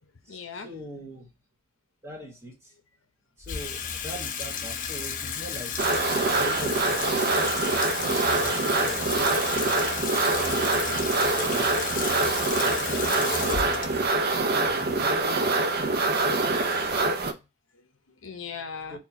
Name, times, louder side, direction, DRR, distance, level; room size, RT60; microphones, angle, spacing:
voice 1, 0.0-0.7 17.4-19.0, left 6 dB, 65° left, 0.8 m, -42 dB
voice 2, 0.6-1.3 2.0-2.8 3.4-5.9 6.3-9.7 10.2-17.0 18.9-19.0, right 1 dB, 15° right, 1.3 m, -41 dB
Water tap faucet / Sink (filling or washing), 3.4-15.8, left 7 dB, 40° left, 0.6 m, -33 dB
sound 1, 5.8-17.3, right 3 dB, 50° right, 0.6 m, -25 dB
4.4 x 2.3 x 4.4 m
head